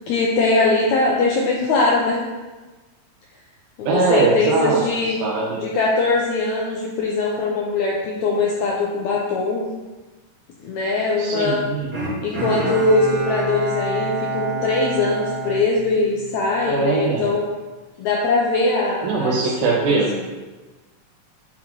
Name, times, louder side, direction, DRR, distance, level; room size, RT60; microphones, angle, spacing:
voice 1, 0.1-2.2 3.8-5.2 5.6-9.7 10.6-11.6 12.2-17.5 18.0-19.4 19.9-20.3, left 3 dB, 80° left, -2 dB, 1.7 m, -21 dB
voice 2, 3.9-4.8 5.2-5.6 11.2-11.9 16.6-17.3 19.0-20.1, right 4 dB, 90° right, -3 dB, 2.5 m, -21 dB
Bowed string instrument, 11.9-16.4 16.9-17.0, right 2 dB, 55° right, 0.6 m, -27 dB
8.9 x 4.0 x 2.9 m, 1.2 s
omnidirectional pair, 3.9 m